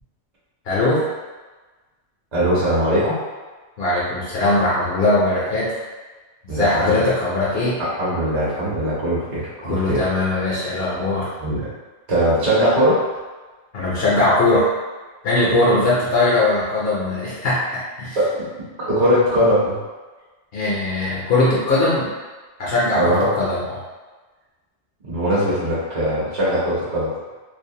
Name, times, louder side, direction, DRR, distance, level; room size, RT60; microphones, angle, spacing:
voice 1, 0.7-1.0 3.8-5.7 6.4-7.8 9.6-11.3 13.7-14.7 15.2-18.2 20.5-22.1 22.6-23.8, left 2 dB, 60° left, -7 dB, 0.7 m, -20 dB
voice 2, 2.3-3.2 6.5-6.9 7.8-10.0 11.4-11.6 12.1-13.0 18.1-18.5 18.8-19.8 23.0-23.3 25.0-27.1, equal, 40° right, -10 dB, 0.8 m, -20 dB
2.5 x 2.1 x 2.7 m, 1.3 s
omnidirectional pair, 1.2 m